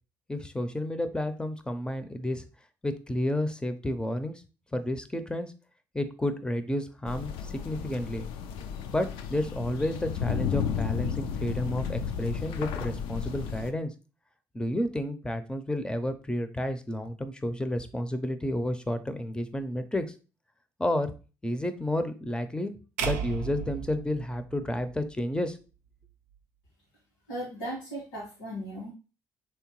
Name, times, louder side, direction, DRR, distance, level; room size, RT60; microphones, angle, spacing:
voice 1, 0.3-2.4 2.8-4.4 4.7-5.5 5.9-8.2 8.9-13.9 14.5-20.1 20.8-21.1 21.4-22.7 23.0-25.6, left 1 dB, 10° left, 10 dB, 0.5 m, -31 dB
sound 1, 7.1-13.7, left 7 dB, 70° left, 0.4 m, -33 dB
sound 2, 23.0-25.2, right 7 dB, 85° right, 0.4 m, -35 dB
voice 2, 27.3-28.9, equal, 90° left, -6 dB, 1.4 m, -37 dB
3.3 x 2.8 x 3.0 m, 0.33 s
hypercardioid pair, 55°, 9 cm